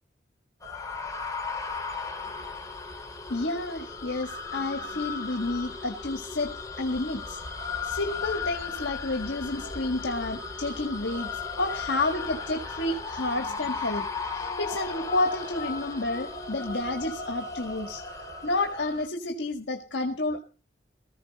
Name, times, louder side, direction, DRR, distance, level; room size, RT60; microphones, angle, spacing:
sound 1, 0.6-19.1, left 4 dB, 20° left, 2.3 m, -36 dB
voice 1, 3.3-7.4 7.8-18.0 18.4-20.4, left 2 dB, 70° left, 3 dB, 1.6 m, -30 dB
18.0 x 14.5 x 4.1 m, 0.36 s
head